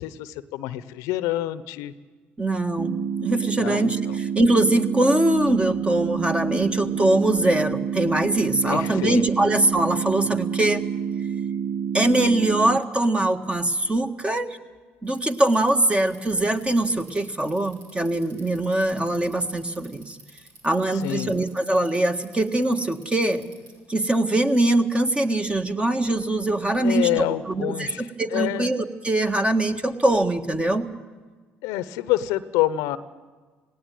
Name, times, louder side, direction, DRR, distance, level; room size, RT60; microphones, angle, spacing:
voice 1, 0.0-1.9 3.6-4.1 8.6-9.5 20.9-21.4 26.8-28.7 31.6-33.0, left 14 dB, 75° left, 15 dB, 0.9 m, -27 dB
voice 2, 2.4-10.8 11.9-14.6 15.0-20.2 20.6-23.5 23.9-30.9, right 1 dB, 20° right, 7 dB, 1.7 m, -22 dB
sound 1, 2.8-12.8, right 7 dB, 55° right, 0.8 m, -28 dB
Bicycle, 15.0-23.9, right 1 dB, 85° right, 6.2 m, -50 dB
18.5 x 18.0 x 9.2 m, 1.4 s
hypercardioid pair, 70°, 6 cm